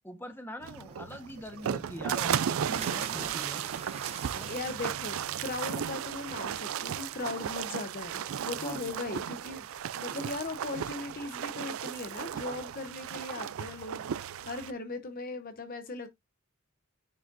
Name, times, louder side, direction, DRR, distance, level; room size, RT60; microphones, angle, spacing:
voice 1, 0.0-3.6 4.3-4.5 8.5-8.9, left 1 dB, 10° left, 1.2 m, -43 dB
sound 1, 0.6-14.7, right 9 dB, 75° right, 0.4 m, -35 dB
sound 2, 0.9-10.8, right 4 dB, 30° right, 0.8 m, -48 dB
voice 2, 4.5-9.7 9.9-14.1 14.4-16.1, left 3 dB, 40° left, 0.8 m, -38 dB
9.7 x 4.9 x 2.5 m
head